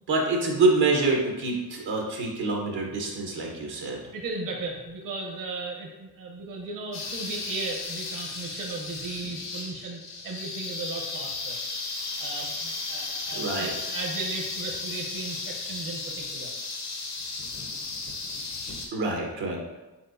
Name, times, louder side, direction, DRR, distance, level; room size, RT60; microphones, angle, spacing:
voice 1, 0.1-4.0 13.3-13.7 18.9-19.6, right 3 dB, 80° right, 0 dB, 1.0 m, -26 dB
voice 2, 4.1-11.6 12.2-16.5 19.0-19.1, right 3 dB, 55° right, 1 dB, 0.8 m, -36 dB
sound 1, 6.9-18.9, left 3 dB, 85° left, 1.0 m, -35 dB
4.4 x 3.9 x 2.5 m, 1.1 s
supercardioid pair, 55°, 39 cm